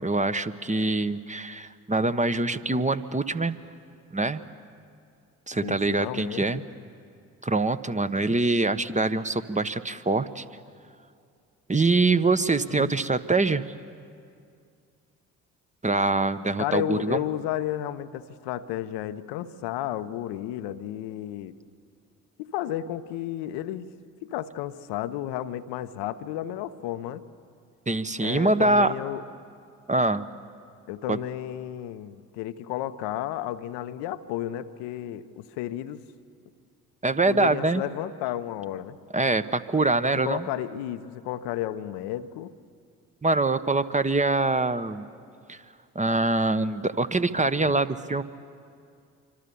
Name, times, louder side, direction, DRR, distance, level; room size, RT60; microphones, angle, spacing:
voice 1, 0.0-3.6 4.1-4.4 5.5-6.6 7.4-10.4 11.7-13.6 15.8-17.2 27.9-28.9 29.9-30.2 31.1-31.2 37.0-37.8 39.1-40.4 43.2-45.0 45.5-45.6 45.9-48.2, right 2 dB, 15° right, 11 dB, 1.1 m, -24 dB
voice 2, 5.6-6.6 12.7-12.9 16.6-21.6 22.4-23.9 24.2-27.2 28.2-29.2 30.9-36.0 37.3-39.0 40.2-42.5, left 12 dB, 70° left, 11 dB, 0.9 m, -32 dB
27.0 x 25.0 x 7.0 m, 2.3 s
hypercardioid pair, 45°, 42 cm